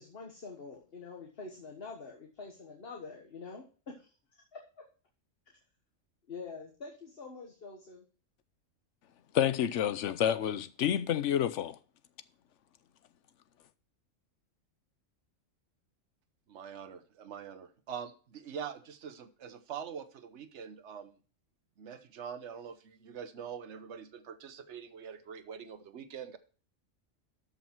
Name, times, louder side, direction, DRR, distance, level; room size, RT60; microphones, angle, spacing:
voice 1, 0.0-4.6 5.5-5.6 6.3-8.0, left 4 dB, 50° left, 1.5 m, -46 dB
voice 2, 9.3-11.8, left 10 dB, 70° left, 1.0 m, -29 dB
voice 3, 16.5-21.2 21.8-26.4, right 7 dB, 60° right, 1.2 m, -44 dB
13.0 x 5.6 x 4.5 m
omnidirectional pair, 1.3 m